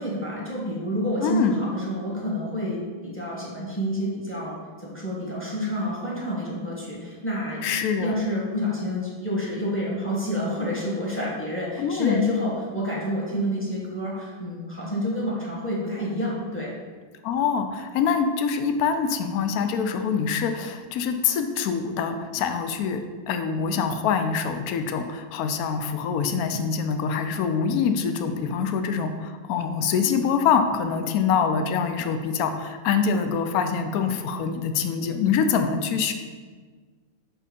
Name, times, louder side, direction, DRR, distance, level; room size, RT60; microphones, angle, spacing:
voice 1, 0.0-16.7, equal, 5° left, -5 dB, 1.5 m, -29 dB
voice 2, 1.2-1.6 7.6-8.2 11.8-12.3 17.2-23.0 23.3-36.1, left 6 dB, 70° left, 7 dB, 0.9 m, -25 dB
6.1 x 4.4 x 5.2 m, 1.5 s
omnidirectional pair, 2.0 m